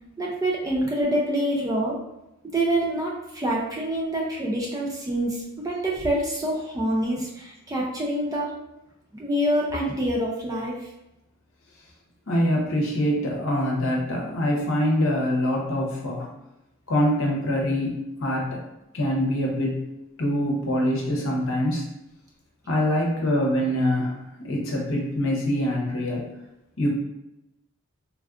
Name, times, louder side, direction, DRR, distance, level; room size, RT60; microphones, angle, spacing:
voice 1, 0.2-2.0 2.5-8.5 9.1-10.8, right 1 dB, 15° right, -3 dB, 0.4 m, -26 dB
voice 2, 12.3-16.3 16.9-18.6 18.9-19.8 20.2-21.8 22.7-24.1 24.4-26.2 26.8-26.9, equal, 60° left, -2 dB, 0.8 m, -24 dB
3.4 x 2.4 x 2.4 m, 0.91 s
head